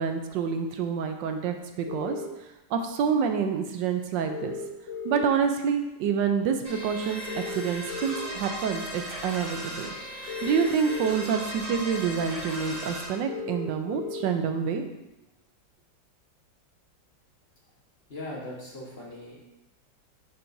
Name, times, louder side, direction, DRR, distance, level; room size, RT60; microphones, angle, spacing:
voice 1, 0.0-2.2 2.7-4.6 5.0-9.9 10.4-14.9, right 6 dB, 80° right, 6 dB, 1.2 m, -27 dB
sound 1, 1.9-2.3 4.3-5.3 7.3-8.3 10.3-11.3 13.3-14.3, left 4 dB, 80° left, 1.8 m, -36 dB
sound 2, 6.6-13.0, equal, 40° right, 2.2 m, -37 dB
voice 2, 18.1-19.4, left 1 dB, 35° left, -5 dB, 1.3 m, -39 dB
10.5 x 4.5 x 2.6 m, 0.97 s
omnidirectional pair, 2.0 m